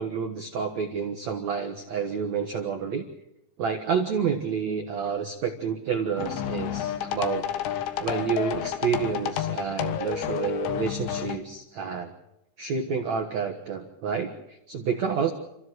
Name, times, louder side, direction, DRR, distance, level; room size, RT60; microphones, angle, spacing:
voice 1, 0.0-3.0 3.6-7.4 8.0-12.1 12.6-15.3, right 6 dB, 80° right, 4 dB, 1.5 m, -29 dB
sound 1, 6.2-11.4, left 10 dB, 75° left, 3.7 m, -30 dB
29.0 x 14.5 x 7.9 m, 0.89 s
omnidirectional pair, 5.6 m